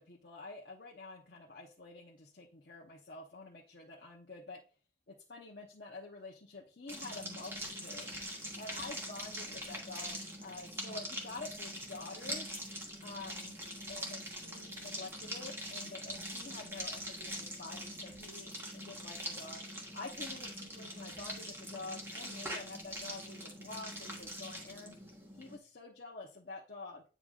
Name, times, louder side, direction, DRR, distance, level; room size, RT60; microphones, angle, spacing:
voice 1, 0.0-4.6 5.1-12.5 13.0-13.6 13.9-19.6 19.9-25.0 25.4-27.0, left 3 dB, 60° left, -3 dB, 1.0 m, -48 dB
sound 1, 6.9-25.6, equal, 15° right, 1.4 m, -43 dB
9.0 x 5.1 x 2.5 m, 0.35 s
head